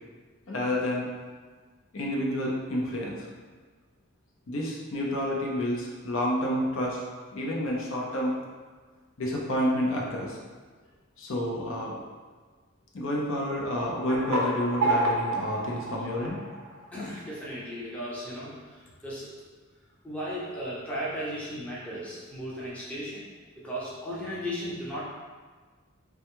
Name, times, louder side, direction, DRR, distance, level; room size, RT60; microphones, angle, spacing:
voice 1, 0.5-1.1 1.9-3.3 4.5-7.0 7.3-8.3 9.2-10.4 11.2-12.0 12.9-16.4, left 1 dB, 65° left, -3 dB, 0.5 m, -29 dB
sound 1, 13.7-17.1, right 1 dB, 70° right, 0.5 m, -30 dB
voice 2, 16.9-18.5 19.0-19.3 20.0-23.2 23.5-25.0, equal, 5° left, -7 dB, 0.6 m, -35 dB
3.3 x 2.3 x 2.9 m, 1.5 s
head